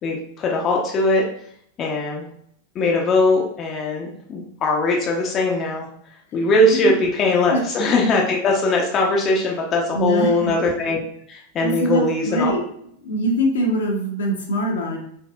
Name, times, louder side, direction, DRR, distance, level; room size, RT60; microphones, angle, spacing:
voice 1, 0.0-1.2 1.8-2.3 2.7-5.9 6.3-11.0 11.3-12.5, left 2 dB, 30° left, -1 dB, 0.7 m, -20 dB
voice 2, 9.9-10.5 11.6-12.6 13.0-15.0, equal, 65° left, 0 dB, 0.9 m, -23 dB
4.5 x 3.5 x 2.3 m, 0.68 s
figure-of-eight pair, 90°, 0 cm